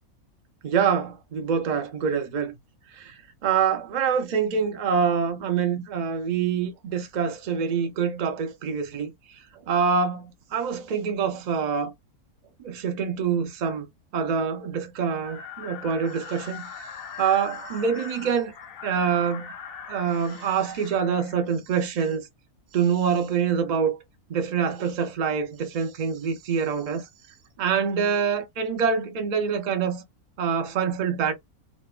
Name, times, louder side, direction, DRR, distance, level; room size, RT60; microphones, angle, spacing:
voice 1, 0.6-2.5 3.0-3.1 3.4-9.1 9.7-11.9 12.6-13.9 14.1-16.6 17.2-18.5 18.8-19.5 19.9-22.2 22.7-24.0 24.3-27.1 27.6-30.0 30.4-31.3, right 6 dB, 90° right, 0.3 m, -25 dB
sound 1, 15.2-21.5, left 6 dB, 65° left, 0.6 m, -41 dB
2.6 x 2.1 x 2.3 m
omnidirectional pair, 1.6 m